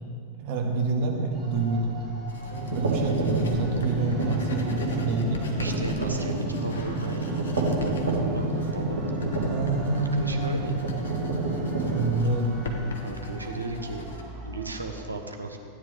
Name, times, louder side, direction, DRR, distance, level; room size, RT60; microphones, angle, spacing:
voice 1, 0.4-2.0 2.7-5.7 9.4-10.7 11.9-12.6, right 2 dB, 50° right, 0 dB, 2.0 m, -27 dB
sound 1, 1.3-15.0, right 2 dB, 15° right, 3.0 m, -42 dB
Writing, 2.3-14.2, left 3 dB, 65° left, 1.2 m, -39 dB
sound 2, 2.5-12.2, right 2 dB, 65° right, 1.6 m, -29 dB
voice 2, 5.4-7.3 7.6-9.2 10.0-10.8 13.0-14.0 14.4-15.6, right 3 dB, 80° right, 4 dB, 1.0 m, -35 dB
16.0 x 9.7 x 3.5 m, 2.3 s
figure-of-eight pair, 90°, 0 cm